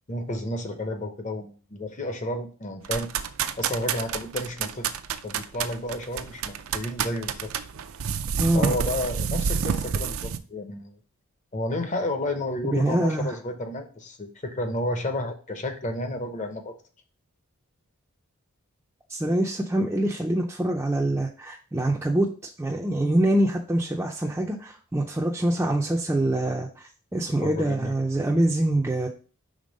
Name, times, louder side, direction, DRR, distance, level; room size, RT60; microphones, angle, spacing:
voice 1, 0.1-3.1 3.6-4.9 5.2-7.5 8.5-11.0 11.5-16.7 27.4-27.9, left 1 dB, 35° left, 6 dB, 0.8 m, -31 dB
sound 1, 2.8-10.4, right 7 dB, 70° right, 0.4 m, -29 dB
voice 2, 8.4-8.7 12.7-13.3 19.1-22.3 22.6-29.1, right 1 dB, 10° right, -2 dB, 0.4 m, -25 dB
5.3 x 3.5 x 5.2 m, 0.38 s
head